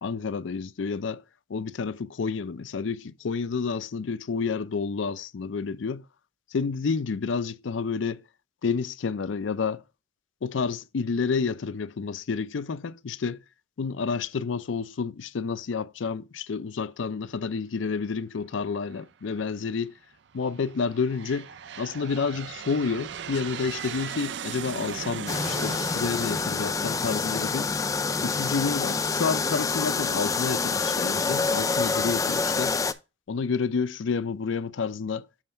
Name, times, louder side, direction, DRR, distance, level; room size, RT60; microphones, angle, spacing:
voice 1, 0.0-1.2 1.5-6.0 6.5-8.2 8.6-9.8 10.4-13.4 13.8-19.9 20.3-21.5 21.8-27.7 28.2-32.8 33.3-35.3, left 5 dB, 75° left, 0.5 m, -29 dB
Aircraft, 18.9-19.4 20.1-27.7, right 7 dB, 60° right, 0.4 m, -39 dB
sound 1, 25.3-32.9, left 4 dB, 15° left, 0.3 m, -27 dB
7.2 x 3.3 x 5.6 m
head